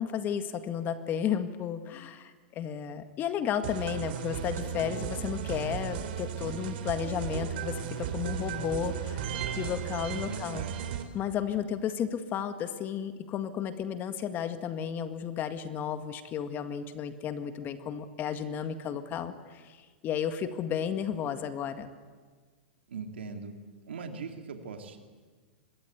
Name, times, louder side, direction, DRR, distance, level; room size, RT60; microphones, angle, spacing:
voice 1, 0.0-10.7 11.1-19.8 20.0-21.9, left 8 dB, 35° left, 8 dB, 1.9 m, -33 dB
sound 1, 3.6-11.0, right 9 dB, 65° right, 3.2 m, -35 dB
voice 2, 10.2-11.1 22.9-23.5 23.9-25.0, right 5 dB, 85° right, 4 dB, 2.8 m, -41 dB
26.0 x 22.0 x 8.3 m, 1.5 s
hypercardioid pair, 115°, 6 cm